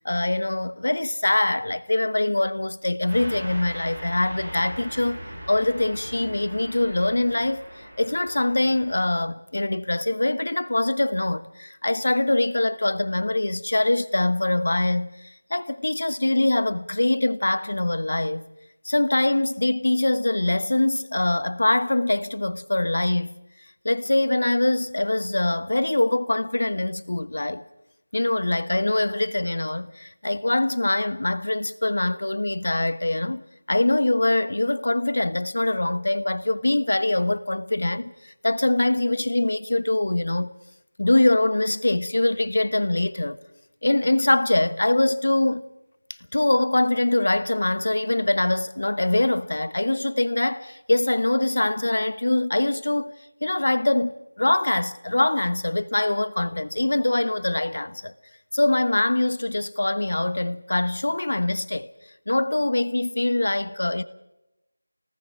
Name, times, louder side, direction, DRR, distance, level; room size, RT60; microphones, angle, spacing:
voice 1, 0.0-5.2 5.5-18.4 18.8-23.3 23.8-27.6 28.1-40.5 41.0-43.4 43.8-45.7 46.3-58.1 58.5-61.9 62.3-64.0, left 2 dB, 55° left, 1.0 m, -23 dB
Car passing by / Truck, 3.1-9.0, equal, 20° right, 7.2 m, -39 dB
25.0 x 19.0 x 6.3 m
figure-of-eight pair, 180°, 0 cm